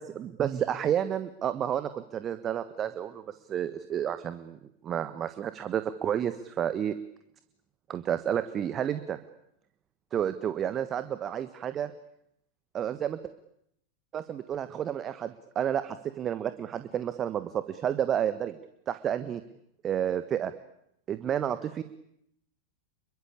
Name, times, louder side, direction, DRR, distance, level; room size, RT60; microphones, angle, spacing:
voice 1, 0.0-6.9 7.9-9.2 10.1-11.9 12.7-13.2 14.1-18.6 18.9-19.4 19.8-20.5 21.1-21.8, right 9 dB, 25° right, 12 dB, 1.4 m, -31 dB
29.0 x 23.0 x 8.6 m, 0.77 s
figure-of-eight pair, 90°, 0 cm